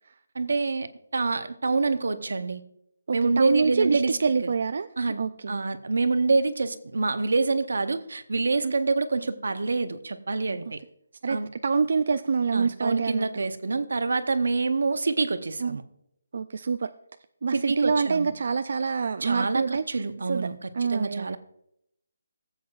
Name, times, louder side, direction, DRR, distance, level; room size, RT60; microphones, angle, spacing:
voice 1, 0.3-2.6 3.1-4.5 5.0-10.8 11.3-11.5 12.5-15.8 17.5-18.3 19.2-21.4, right 3 dB, 70° right, 11 dB, 0.8 m, -27 dB
voice 2, 3.1-4.9 5.2-5.6 8.6-8.7 11.2-13.4 15.6-15.8 16.3-16.9 17.4-20.0 20.3-20.5 20.7-21.4, right 5 dB, 50° right, 10 dB, 0.3 m, -26 dB
17.0 x 8.1 x 2.4 m, 0.76 s
hypercardioid pair, 175°, 0 cm